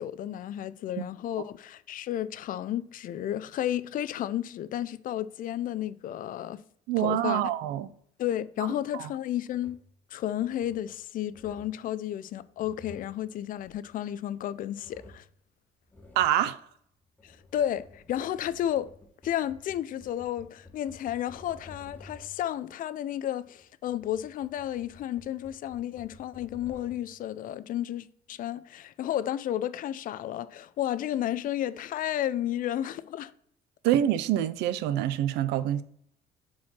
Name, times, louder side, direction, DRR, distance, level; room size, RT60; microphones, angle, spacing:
voice 1, 0.0-6.6 7.0-7.4 8.2-9.8 10.1-15.2 17.2-18.9 19.2-33.3, left 11 dB, 55° left, 0.4 m, -32 dB
voice 2, 6.9-7.9 8.9-9.1 16.2-16.6 33.8-35.8, right 11 dB, 85° right, 0.5 m, -26 dB
sound 1, 9.5-9.9 10.4-10.9 11.3-11.9 12.4-14.4 14.8-15.4 15.9-16.4 17.0-22.5 23.4-27.2, left 2 dB, 10° left, 1.4 m, -53 dB
4.7 x 4.3 x 5.8 m
cardioid pair, 110°, 17 cm